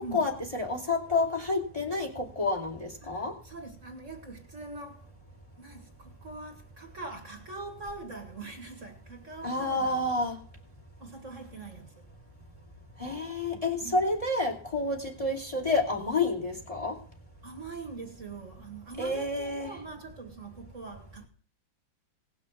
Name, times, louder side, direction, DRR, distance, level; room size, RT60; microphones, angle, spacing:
voice 1, 0.1-3.3 9.4-10.4 13.0-17.0 19.0-19.7, left 2 dB, 20° left, 2.6 m, -29 dB
voice 2, 3.0-5.1 5.6-9.9 11.0-12.0 13.5-14.0 17.4-21.3, right 3 dB, 45° right, 2.1 m, -43 dB
18.0 x 6.4 x 7.3 m
omnidirectional pair, 2.0 m